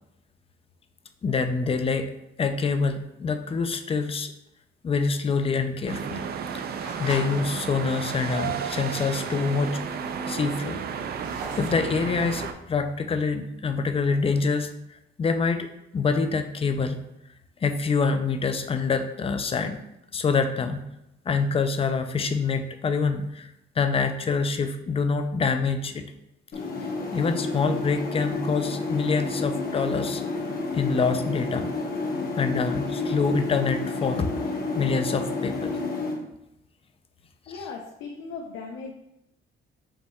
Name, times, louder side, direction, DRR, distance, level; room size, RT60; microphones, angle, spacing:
voice 1, 1.2-2.1 2.4-4.3 4.8-6.2 7.0-9.8 10.3-10.8 11.6-14.7 15.2-15.7 15.9-17.0 17.6-19.8 20.1-20.8 21.3-23.5 23.8-26.0 27.1-30.3 30.7-31.7 32.4-34.3 34.8-35.8 37.5-37.6, left 4 dB, 30° left, 8 dB, 0.4 m, -26 dB
sound 1, 5.2-7.4 7.9-8.2 8.7-8.8 9.0-9.1 9.3-9.9 10.3-12.9, right 2 dB, 85° right, 1.3 m, -41 dB
sound 2, 5.9-12.5, right 6 dB, 50° right, 0.4 m, -32 dB
sound 3, 26.5-36.1, left 3 dB, 50° left, 1.0 m, -30 dB
voice 2, 37.5-38.9, left 4 dB, 80° left, 0 dB, 0.6 m, -37 dB
5.3 x 3.4 x 2.2 m, 0.86 s
cardioid pair, 90°, 20 cm